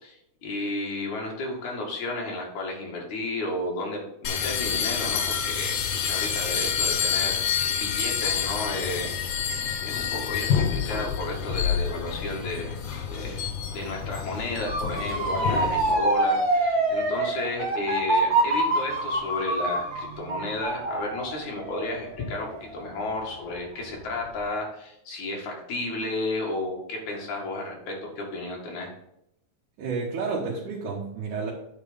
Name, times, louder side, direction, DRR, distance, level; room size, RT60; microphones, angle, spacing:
voice 1, 0.0-7.5 7.7-12.8 13.0-28.9, left 2 dB, 65° left, -1 dB, 3.3 m, -33 dB
sound 1, 4.2-15.9, left 7 dB, 85° left, 2.9 m, -28 dB
Motor vehicle (road) / Siren, 14.7-23.6 24.0-24.4, right 2 dB, 30° right, 2.2 m, -26 dB
voice 2, 29.8-31.5, right 4 dB, 75° right, -3 dB, 2.9 m, -30 dB
9.3 x 4.6 x 5.2 m, 0.79 s
omnidirectional pair, 3.7 m